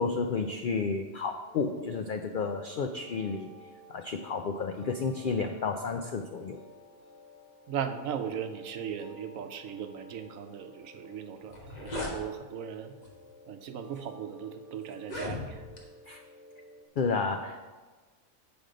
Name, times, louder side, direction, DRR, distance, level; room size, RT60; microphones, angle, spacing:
voice 1, 0.0-3.5 3.9-6.6 16.1-16.2 17.0-17.6, left 4 dB, 85° left, 5 dB, 0.4 m, -31 dB
sound 1, 1.5-16.9, left 2 dB, 40° right, 1.2 m, -54 dB
voice 2, 7.7-12.9 13.5-15.6, right 8 dB, 75° right, 8 dB, 1.0 m, -38 dB
sound 2, 11.0-11.1 11.4-12.2 13.0-13.3 14.0-14.1 14.9-15.8, left 1 dB, 35° left, 1.3 m, -37 dB
7.9 x 5.2 x 5.0 m, 1.3 s
omnidirectional pair, 1.4 m